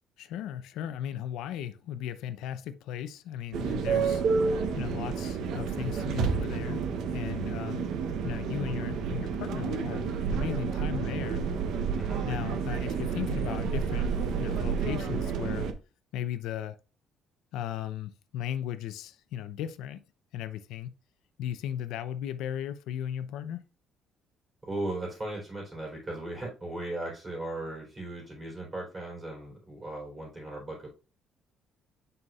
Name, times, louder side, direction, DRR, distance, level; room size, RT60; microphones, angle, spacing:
voice 1, 0.2-4.2 4.8-6.8 7.1-7.9 8.2-11.4 12.2-14.1 14.4-15.7 16.1-16.8 17.5-20.0 20.3-20.9 21.4-23.6, left 10 dB, 90° left, 0.6 m, -36 dB
sound 1, 3.5-15.7, right 6 dB, 70° right, 0.8 m, -30 dB
voice 2, 11.9-12.3 24.6-30.9, right 2 dB, 20° right, 3.7 m, -37 dB
7.9 x 5.6 x 2.4 m
cardioid pair, 145°, 0 cm